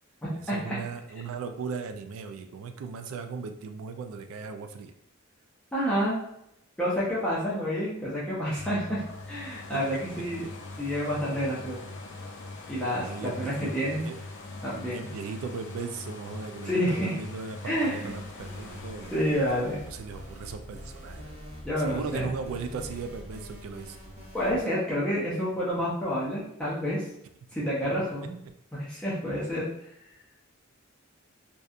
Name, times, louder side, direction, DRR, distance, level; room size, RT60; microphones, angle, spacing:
voice 1, 0.3-4.9 9.7-10.0 10.4-10.5 13.0-13.8 14.0-14.2 14.9-19.4 19.7-21.4 21.8-24.0 28.0-28.3, right 5 dB, 75° right, 7 dB, 0.3 m, -38 dB
voice 2, 5.7-6.2 6.8-10.4 10.8-11.8 12.7-14.0 14.6-15.1 16.6-17.2 17.6-18.2 19.1-19.8 21.6-22.3 24.3-27.0 27.5-28.4 28.7-29.7, equal, 5° left, -9 dB, 0.5 m, -29 dB
sound 1, 8.5-22.2 22.8-22.9, left 2 dB, 60° left, 0.5 m, -43 dB
sound 2, 17.7-24.6, equal, 35° right, 0.7 m, -44 dB
2.7 x 2.2 x 2.4 m, 0.76 s
head